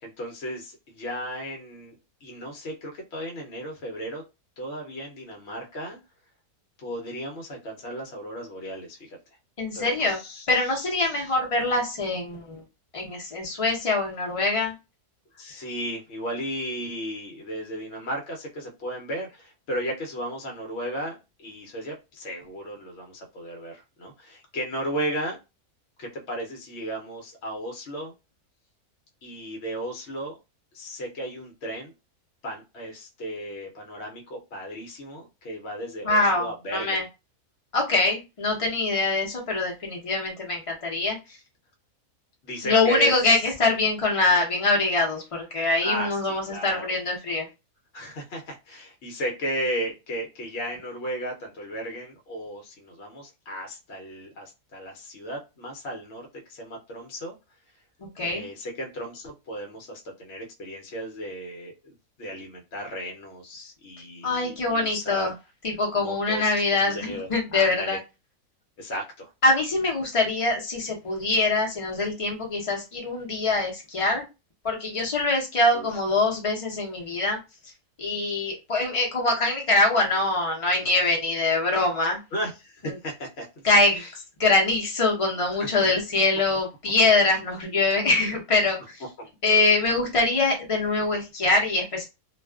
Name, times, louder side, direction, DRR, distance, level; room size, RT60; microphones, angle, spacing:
voice 1, 0.0-2.0 2.2-4.2 4.6-6.0 6.8-9.2 9.7-11.3 15.3-25.4 26.0-28.1 29.2-30.4 30.7-31.9 32.4-37.0 42.4-43.4 45.8-46.9 47.9-57.3 58.2-65.3 66.0-68.0 68.8-69.3 75.7-76.0 80.8-81.0 82.3-83.7 83.9-84.1 85.6-85.7 89.5-89.7, equal, 60° left, 1 dB, 0.8 m, -35 dB
voice 2, 9.6-10.2 10.5-12.6 12.9-14.7 36.0-37.0 37.7-41.2 42.6-47.5 58.2-58.5 64.2-65.3 65.6-68.0 69.4-74.2 74.6-77.4 78.0-82.2 83.6-84.0 84.4-89.0 89.4-92.0, left 2 dB, 40° left, 0 dB, 0.4 m, -24 dB
2.4 x 2.2 x 2.3 m, 0.26 s
omnidirectional pair, 1.6 m